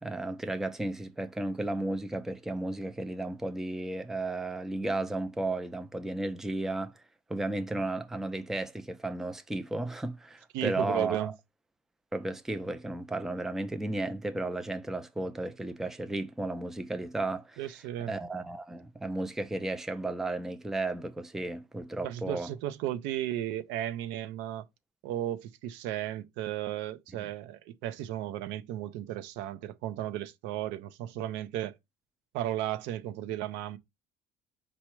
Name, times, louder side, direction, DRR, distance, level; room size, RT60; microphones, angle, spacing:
voice 1, 0.0-7.0 7.3-11.3 12.1-17.7 18.1-22.5 27.2-27.3, right 2 dB, ahead, 0.3 m, -34 dB
voice 2, 10.5-11.3 17.6-18.1 22.0-24.7 25.0-31.7 32.3-33.8, right 12 dB, 85° right, 0.5 m, -34 dB
4.5 x 2.1 x 4.4 m
cardioid pair, 125°, 19 cm